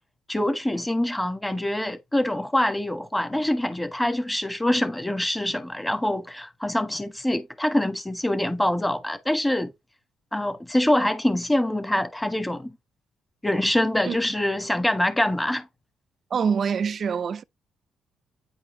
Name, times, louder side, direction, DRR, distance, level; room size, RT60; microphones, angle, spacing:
voice 1, 0.3-9.7 10.3-12.7 13.4-15.7, left 1 dB, 10° left, 1.4 m, -25 dB
voice 2, 16.3-17.4, right 6 dB, 50° right, 0.5 m, -25 dB
9.1 x 4.8 x 3.1 m
cardioid pair, 90°, 0 cm